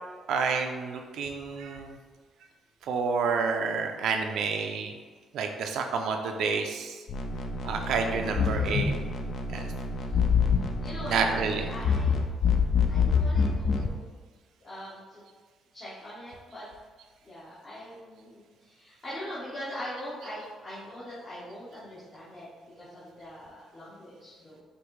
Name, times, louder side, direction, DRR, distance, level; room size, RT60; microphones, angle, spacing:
voice 1, 0.3-2.0 2.9-4.9 5.3-7.0 7.6-8.9 9.5-9.6 11.1-11.7, right 5 dB, 80° right, 4 dB, 0.4 m, -29 dB
sound 1, 7.1-13.9, left 5 dB, 60° left, 0.5 m, -26 dB
voice 2, 8.0-8.7 10.0-10.1 10.8-12.2 12.9-14.1 14.6-15.2 15.7-16.7 17.2-22.5 22.8-24.6, equal, 40° left, -10 dB, 1.3 m, -42 dB
5.0 x 2.6 x 3.1 m, 1.5 s
cardioid pair, 90°, 0 cm